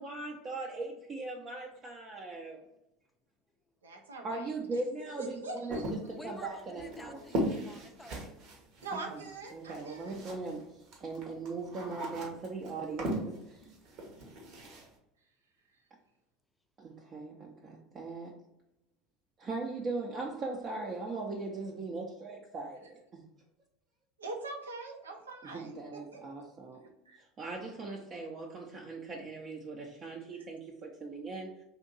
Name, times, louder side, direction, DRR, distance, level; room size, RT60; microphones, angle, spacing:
voice 1, 0.0-2.6 4.2-5.8 6.1-7.2 8.9-13.6 16.8-18.3 19.4-23.2 25.5-26.8 27.2-31.5, right 3 dB, 35° right, -1 dB, 0.5 m, -39 dB
voice 2, 3.8-4.8 5.2-5.9 8.8-10.2 24.2-26.2 27.1-27.2, right 3 dB, 85° right, 2 dB, 0.4 m, -43 dB
sound 1, 5.7-10.6 10.9-14.9, right 1 dB, 55° right, 0.9 m, -38 dB
voice 3, 5.8-8.4, left 2 dB, 10° left, 5 dB, 0.5 m, -50 dB
2.7 x 2.5 x 3.9 m, 0.85 s
hypercardioid pair, 75°, 0 cm